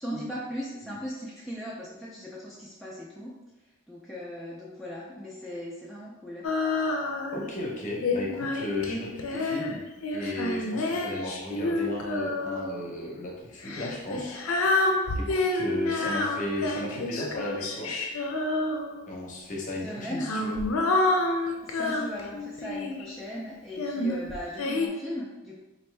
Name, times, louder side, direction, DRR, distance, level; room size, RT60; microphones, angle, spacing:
voice 1, 0.0-3.3 3.9-6.5 16.0-16.1 19.8-20.3 21.6-25.6, equal, ahead, -7 dB, 0.3 m, -38 dB
Female singing, 6.4-7.5 8.0-12.8 13.6-19.2 19.9-23.1 23.7-24.9, left 2 dB, 80° left, 0.5 m, -28 dB
voice 2, 7.3-9.8 10.1-14.7 15.1-17.9 19.1-20.6, left 1 dB, 35° left, -2 dB, 0.7 m, -35 dB
4.2 x 2.6 x 3.2 m, 1.1 s
head